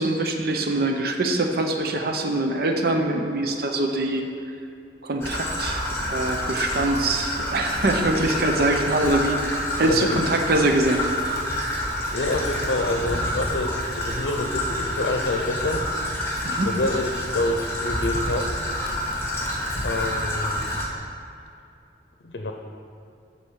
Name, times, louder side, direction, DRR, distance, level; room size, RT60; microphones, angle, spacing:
voice 1, 0.0-4.2 5.0-11.0 16.4-16.7, right 2 dB, 60° right, 4 dB, 0.7 m, -23 dB
Traffic noise roadway noise / Trickle dribble, 5.2-20.9, left 1 dB, 15° left, 1.2 m, -28 dB
voice 2, 12.1-15.8 16.6-18.5 19.8-20.6 22.2-22.5, left 2 dB, 80° left, 3 dB, 0.6 m, -27 dB
8.7 x 4.3 x 6.3 m, 2.6 s
head